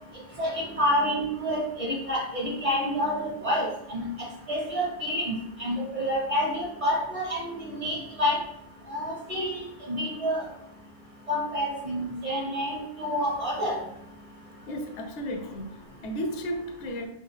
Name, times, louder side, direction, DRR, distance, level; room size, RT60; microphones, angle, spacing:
voice 1, 0.4-4.0 4.5-8.4 8.9-10.4 11.3-13.8, equal, 30° right, -3 dB, 1.0 m, -28 dB
voice 2, 14.7-17.1, equal, 85° left, 5 dB, 0.9 m, -34 dB
3.5 x 2.6 x 3.3 m, 0.75 s
omnidirectional pair, 1.2 m